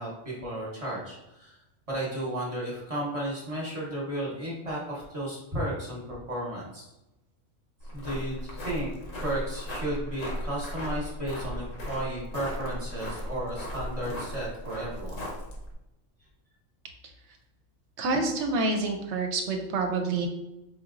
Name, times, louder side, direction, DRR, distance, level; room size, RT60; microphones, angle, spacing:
voice 1, 0.0-1.6 1.9-6.8 7.9-8.9 9.2-15.2, right 1 dB, 30° right, -5 dB, 1.0 m, -34 dB
sound 1, 7.8-15.7, equal, 75° left, 1.2 m, -36 dB
voice 2, 18.0-20.3, right 3 dB, 70° right, 4 dB, 0.8 m, -27 dB
4.7 x 2.9 x 2.5 m, 0.92 s
omnidirectional pair, 1.3 m